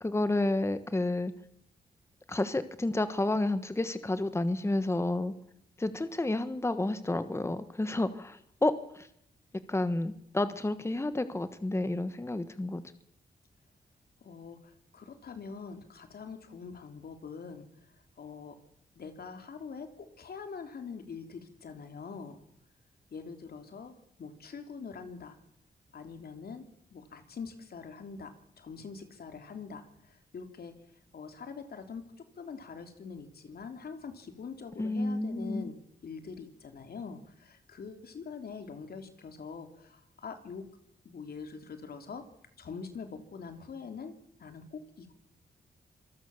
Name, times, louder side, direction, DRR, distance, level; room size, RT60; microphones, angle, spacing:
voice 1, 0.0-1.3 2.3-5.3 5.8-9.1 9.7-12.8 34.8-35.7, left 2 dB, 15° left, 12 dB, 1.3 m, -30 dB
voice 2, 14.2-18.6 18.9-22.4 23.1-25.4 25.9-30.8 31.1-40.6 41.0-42.3 42.6-45.1, left 5 dB, 70° left, 7 dB, 3.2 m, -44 dB
26.0 x 19.5 x 7.2 m, 0.75 s
cardioid pair, 95°, 17 cm